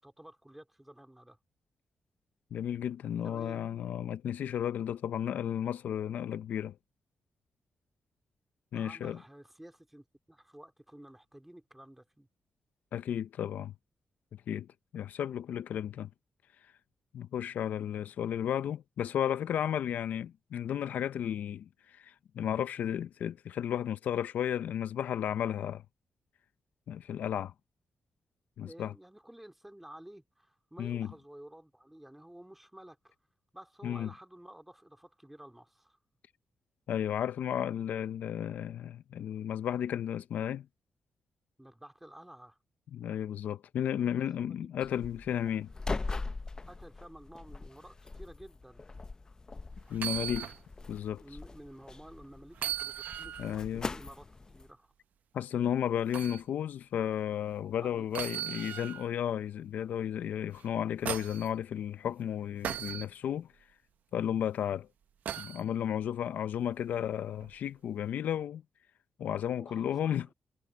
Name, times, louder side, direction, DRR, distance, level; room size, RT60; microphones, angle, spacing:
voice 1, 0.0-1.4 3.2-3.6 8.7-12.3 28.6-33.2 33.5-36.0 41.6-42.6 44.0-44.7 46.7-48.8 51.2-54.9 57.8-58.9 66.1-66.2 69.6-70.3, right 1 dB, 5° right, 2.3 m, -52 dB
voice 2, 2.5-6.8 8.7-9.2 12.9-13.7 14.5-14.7 14.9-16.1 17.1-25.8 26.9-27.5 28.6-28.9 30.8-31.1 33.8-34.1 36.9-40.7 42.9-45.7 49.9-50.5 50.9-51.2 53.4-53.9 55.3-63.5 64.1-64.9 65.4-68.6 69.2-70.3, left 9 dB, 80° left, 0.5 m, -33 dB
sound 1, 44.8-54.7, left 3 dB, 25° left, 0.6 m, -41 dB
sound 2, 49.9-50.6 51.0-51.1 52.5-53.6 56.1-56.4 58.1-59.1 60.6-61.5 62.6-63.1 65.3-65.6 67.4-67.5, right 11 dB, 80° right, 0.7 m, -37 dB
cardioid pair, 115°, 3 cm